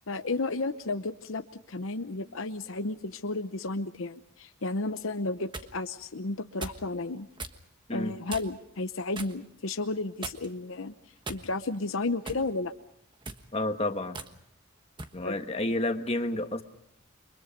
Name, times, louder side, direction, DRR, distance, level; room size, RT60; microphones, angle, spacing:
voice 1, 0.1-1.4 1.7-7.3 7.9-10.9 11.3-12.7 15.2-15.4, left 2 dB, 65° left, 9 dB, 0.9 m, -33 dB
sound 1, 5.2-5.7 6.6-6.9 7.4-7.6 8.3-8.6 9.1-9.4 10.2-10.6 11.2-11.8 12.3-12.5 13.1-13.5 14.1-14.3 15.0-15.2, right 3 dB, 20° right, 1.3 m, -39 dB
voice 2, 13.5-14.2 15.1-16.6, left 1 dB, 25° left, 6 dB, 1.5 m, -30 dB
29.0 x 24.0 x 5.3 m, 0.72 s
head